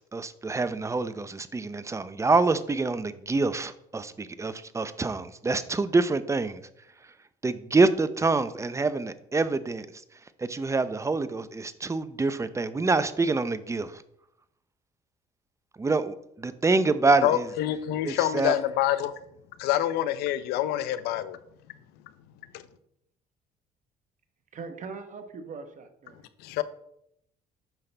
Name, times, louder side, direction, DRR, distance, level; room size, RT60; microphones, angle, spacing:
voice 1, 0.0-6.6 7.4-9.9 10.4-14.0 15.8-17.5 18.0-18.5, right 3 dB, 20° right, 13 dB, 0.6 m, -26 dB
voice 2, 17.2-19.1 19.6-21.4 22.5-22.6 26.4-26.6, left 12 dB, 85° left, 14 dB, 0.6 m, -26 dB
voice 3, 24.5-26.2, right 4 dB, 50° right, 7 dB, 1.2 m, -41 dB
8.9 x 5.7 x 3.4 m, 0.75 s
supercardioid pair, 80°, 16 cm